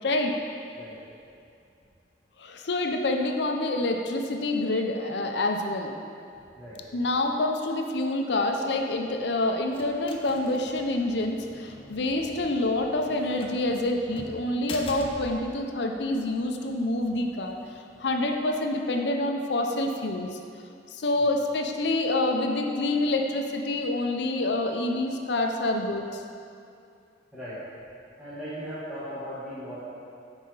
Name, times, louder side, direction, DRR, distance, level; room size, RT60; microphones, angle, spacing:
voice 1, 0.0-0.3 2.4-5.9 6.9-17.6 18.0-20.4 20.9-26.2, left 2 dB, 70° left, 3 dB, 0.6 m, -27 dB
sound 1, 8.7-18.3, left 2 dB, 30° left, 0.6 m, -46 dB
voice 2, 28.2-29.8, equal, 5° right, -13 dB, 1.6 m, -38 dB
9.5 x 4.9 x 3.9 m, 2.5 s
head